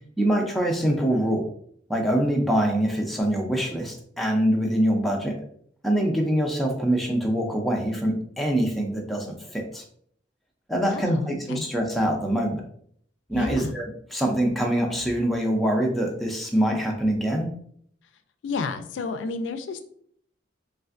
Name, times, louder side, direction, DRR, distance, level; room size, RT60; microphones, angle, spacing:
voice 1, 0.2-1.5 1.9-5.3 5.8-9.8 10.7-12.6 13.3-13.9 14.1-17.5, right 1 dB, ahead, 0 dB, 0.4 m, -24 dB
voice 2, 10.7-11.7 13.3-13.7 18.4-19.8, left 4 dB, 75° left, 9 dB, 0.3 m, -31 dB
3.2 x 2.5 x 2.4 m, 0.63 s
head